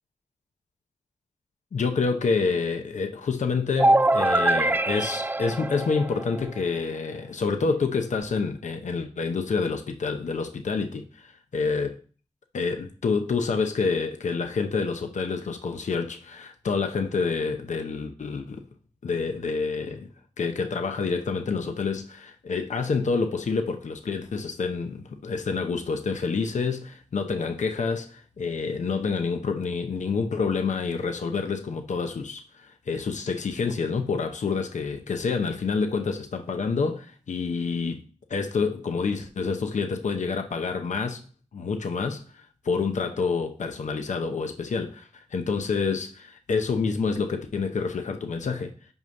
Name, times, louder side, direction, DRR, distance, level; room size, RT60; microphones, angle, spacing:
voice 1, 1.7-12.0 12.5-18.6 19.0-20.1 20.4-38.0 38.3-41.2 41.5-48.7, left 4 dB, 90° left, 0.7 m, -28 dB
sound 1, 3.8-6.6, right 2 dB, 15° right, 0.4 m, -23 dB
6.1 x 5.4 x 5.2 m
cardioid pair, 45°, 12 cm